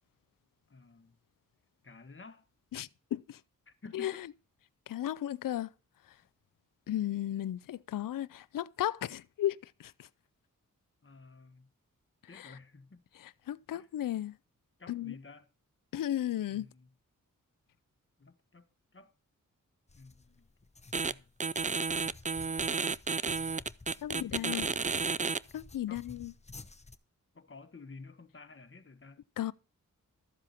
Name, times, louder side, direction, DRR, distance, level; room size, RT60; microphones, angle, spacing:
voice 1, 0.7-1.2 1.8-2.5 3.7-4.2 11.0-11.7 12.3-13.0 13.7-13.9 14.8-15.5 16.5-16.9 18.2-19.1 19.9-20.5 21.0-21.3 24.1-24.9 25.9-26.0 27.3-29.2, left 3 dB, 40° left, 1.4 m, -52 dB
voice 2, 2.7-3.4 3.9-4.3 4.9-5.7 6.9-10.1 12.3-12.5 13.2-14.3 14.9-15.1 15.9-16.7 24.0-24.7 25.5-26.3 29.4-29.5, left 12 dB, 75° left, 0.5 m, -35 dB
sound 1, 19.9-27.0, left 3 dB, 20° left, 0.8 m, -53 dB
Glitching Stylophone A, 20.9-21.1 21.4-25.4, right 5 dB, 25° right, 0.4 m, -32 dB
13.0 x 7.5 x 4.2 m
cardioid pair, 50°, 33 cm